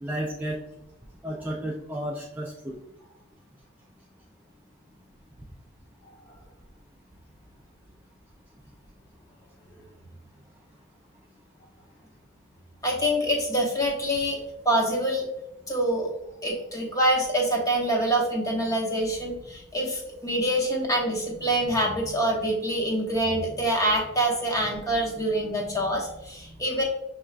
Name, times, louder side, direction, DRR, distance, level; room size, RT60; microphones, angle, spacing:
voice 1, 0.0-0.6 1.2-2.8, right 1 dB, 10° right, -2 dB, 0.3 m, -32 dB
voice 2, 12.8-14.4 14.6-15.3 15.7-16.1 16.4-26.8, right 1 dB, 15° left, 0 dB, 0.8 m, -25 dB
5.9 x 3.1 x 2.4 m, 0.86 s
head